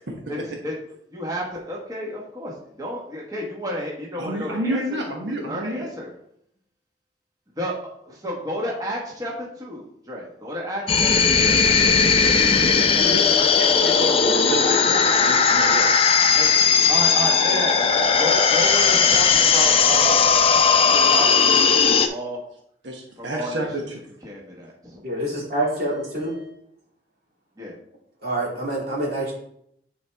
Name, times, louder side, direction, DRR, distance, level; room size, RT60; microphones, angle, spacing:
voice 1, 1.1-4.8 5.3-6.1 7.6-7.7 8.1-11.6 14.4-15.5 16.3-16.5 16.9-20.2 20.9-22.4 23.2-23.7 24.2-25.0 27.6-27.7, equal, 20° right, -2 dB, 1.3 m, -31 dB
voice 2, 4.2-5.9 12.9-15.9 22.8-24.0 26.1-26.5, right 1 dB, 85° right, 1 dB, 1.1 m, -30 dB
sound 1, 10.9-22.1, left 6 dB, 30° left, 0.5 m, -17 dB
voice 3, 25.0-26.3 28.2-29.3, right 1 dB, 60° right, -3 dB, 2.6 m, -26 dB
9.4 x 4.4 x 3.4 m, 0.71 s
head